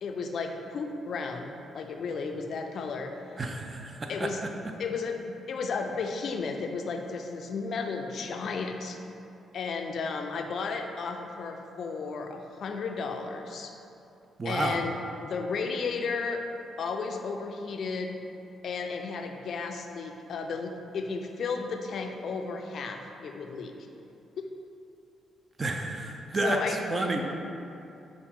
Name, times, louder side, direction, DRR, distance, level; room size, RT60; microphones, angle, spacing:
voice 1, 0.0-3.2 4.1-4.4 4.8-9.0 9.5-13.7 14.4-14.9 15.2-16.5 16.8-18.2 18.6-23.7 24.4-24.5 26.4-27.1, left 4 dB, 65° left, 4 dB, 0.3 m, -33 dB
voice 2, 3.4-4.3 14.4-14.8 25.6-27.3, right 2 dB, 35° right, 3 dB, 0.4 m, -30 dB
5.7 x 2.5 x 3.5 m, 2.8 s
cardioid pair, 75°, 0 cm